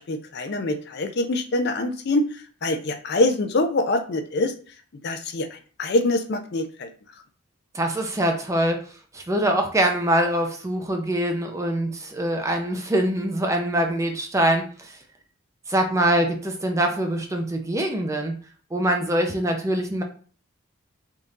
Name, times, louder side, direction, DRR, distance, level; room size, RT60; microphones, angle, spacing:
voice 1, 0.0-4.5 5.0-6.9, left 2 dB, 50° left, 7 dB, 0.5 m, -25 dB
voice 2, 7.7-8.8 9.1-15.0 15.7-18.4 18.7-20.0, right 1 dB, 15° right, 4 dB, 0.5 m, -24 dB
3.6 x 2.7 x 3.7 m, 0.41 s
head